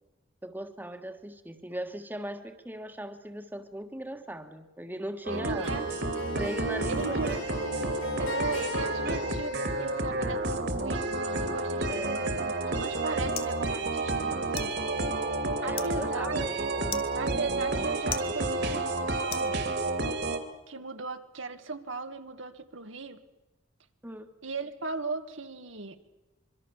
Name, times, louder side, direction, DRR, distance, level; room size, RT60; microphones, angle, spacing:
voice 1, 0.4-5.7 6.4-7.4 11.9-12.3 15.6-17.1 24.0-24.3, right 1 dB, 10° right, 7 dB, 1.5 m, -38 dB
sound 1, 5.2-20.4, right 2 dB, 60° right, 2.8 m, -30 dB
Harp, 5.3-11.1, left 1 dB, 70° left, 6.4 m, -39 dB
voice 2, 5.3-5.8 6.9-7.4 8.2-14.8 15.6-16.5 17.1-19.6 20.7-23.2 24.4-26.0, right 3 dB, 85° right, 7 dB, 1.9 m, -37 dB
sound 2, 12.5-20.1, left 7 dB, 30° left, 2.1 m, -44 dB
25.5 x 23.5 x 7.3 m, 1.1 s
head